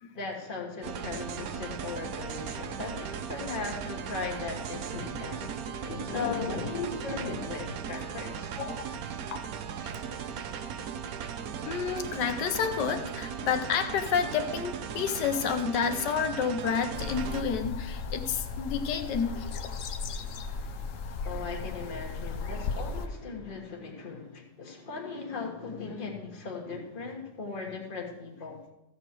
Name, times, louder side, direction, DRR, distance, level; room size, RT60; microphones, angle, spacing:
voice 1, 0.1-8.5 21.2-28.6, left 4 dB, 30° left, 1 dB, 1.6 m, -37 dB
sound 1, 0.8-17.4, right 7 dB, 65° right, 1.1 m, -37 dB
voice 2, 8.6-8.9 9.3-9.4 11.7-19.4, left 7 dB, 80° left, 8 dB, 1.5 m, -30 dB
sound 2, 16.9-23.1, left 4 dB, 60° left, 1.0 m, -36 dB
14.5 x 7.4 x 4.5 m, 0.94 s
omnidirectional pair, 1.8 m